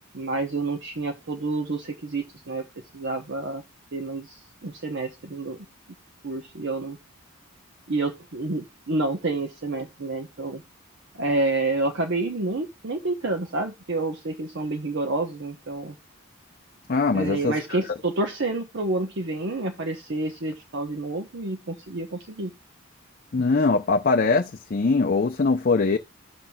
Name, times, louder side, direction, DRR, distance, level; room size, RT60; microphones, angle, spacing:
voice 1, 0.1-2.7 2.9-3.6 3.9-5.7 6.2-7.0 7.9-10.6 11.1-16.0 17.1-22.5, right 2 dB, 55° right, 0.9 m, -29 dB
voice 2, 16.9-17.5 23.3-26.0, left 4 dB, 40° left, 0.5 m, -22 dB
15.5 x 5.9 x 2.3 m
head